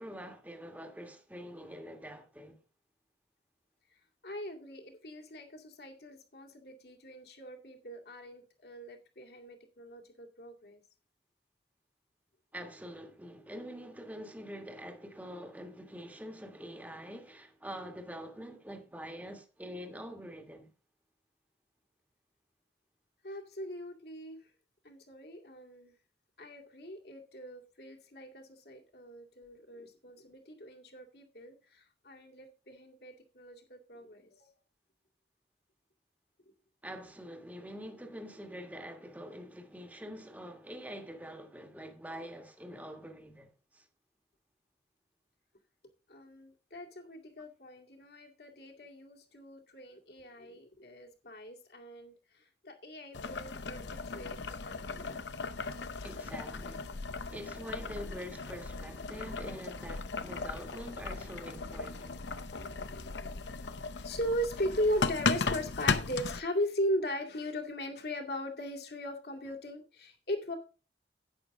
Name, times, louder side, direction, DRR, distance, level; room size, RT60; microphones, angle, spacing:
voice 1, 0.0-2.6 12.5-20.7 36.8-43.8 56.0-56.9 57.3-62.2, equal, 10° right, 1.5 m, -45 dB
voice 2, 4.2-10.8 23.2-24.4 24.8-25.9 26.4-34.5 46.1-55.2 60.4-60.6 62.6-63.4 64.0-70.6, equal, 65° left, 2.3 m, -39 dB
Boiling, 53.1-66.4, left 4 dB, 85° left, 0.8 m, -36 dB
11.0 x 8.6 x 3.7 m
head